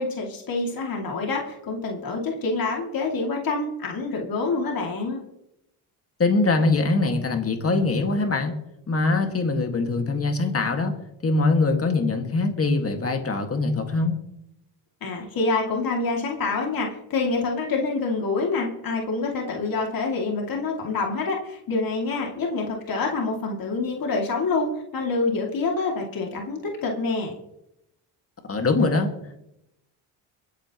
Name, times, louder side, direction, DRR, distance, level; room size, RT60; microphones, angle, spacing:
voice 1, 0.0-5.2 15.0-27.3, left 3 dB, 55° left, 0 dB, 2.6 m, -27 dB
voice 2, 6.2-8.6 8.9-10.9 11.2-14.2 28.5-29.4, left 3 dB, 35° left, 5 dB, 2.0 m, -23 dB
23.0 x 8.7 x 3.0 m, 0.83 s
cardioid pair, 90°, 41 cm